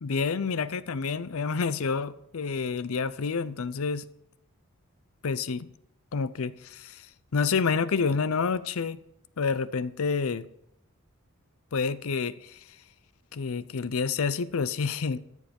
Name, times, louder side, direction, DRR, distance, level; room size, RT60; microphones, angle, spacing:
voice 1, 0.0-4.1 5.2-5.7 6.1-7.1 7.3-9.0 9.4-10.5 11.7-12.6 13.3-15.2, left 5 dB, 75° left, 16 dB, 0.6 m, -28 dB
13.5 x 7.5 x 5.3 m, 0.78 s
head